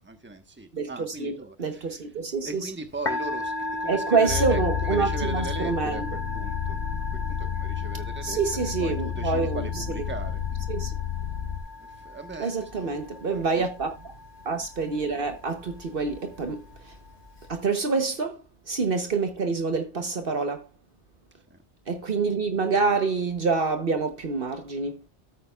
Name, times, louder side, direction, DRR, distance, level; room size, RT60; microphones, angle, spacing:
voice 1, 0.0-6.8 7.3-10.7 11.8-12.9 13.3-13.6 21.4-21.6, right 2 dB, 10° right, 1.2 m, -39 dB
voice 2, 0.7-1.3 1.6-2.7 3.9-6.0 8.2-9.7 10.7-10.9 12.4-14.0 14.4-16.9 17.5-20.7 21.9-25.0, right 4 dB, 55° right, 1.1 m, -27 dB
Musical instrument, 2.9-17.6, left 2 dB, 80° left, 2.4 m, -37 dB
sound 1, 4.3-11.6, left 8 dB, 65° left, 2.2 m, -31 dB
13.0 x 8.6 x 2.3 m
omnidirectional pair, 1.1 m